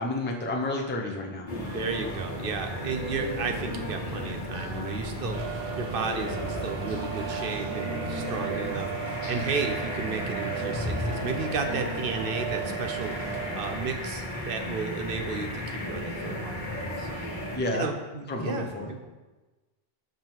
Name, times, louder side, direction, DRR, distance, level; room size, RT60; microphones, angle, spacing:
voice 1, 0.0-1.5 17.5-17.8 18.3-19.1, left 2 dB, 10° left, 0 dB, 0.7 m, -30 dB
sound 1, 1.5-17.6, left 1 dB, 50° left, 1.3 m, -34 dB
voice 2, 1.7-17.2 17.7-19.0, right 4 dB, 65° right, 5 dB, 0.9 m, -33 dB
Organ, 2.6-13.5, right 2 dB, 40° right, 2.5 m, -46 dB
sound 2, 5.3-13.8, right 8 dB, 90° right, 1.0 m, -37 dB
6.0 x 5.4 x 4.5 m, 1.2 s
omnidirectional pair, 1.0 m